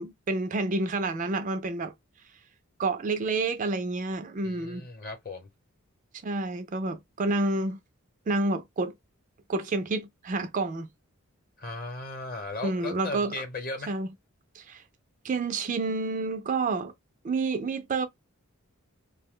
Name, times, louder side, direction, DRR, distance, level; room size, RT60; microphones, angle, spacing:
voice 1, 0.0-1.9 2.8-4.9 6.2-7.8 8.3-8.9 9.5-10.9 12.6-13.3 13.9-14.1 14.5-14.8 15.2-16.9 17.2-18.1, right 3 dB, 35° right, 0.3 m, -29 dB
voice 2, 4.4-5.5 11.6-14.0, left 2 dB, 40° left, 0.9 m, -37 dB
2.7 x 2.1 x 3.6 m
head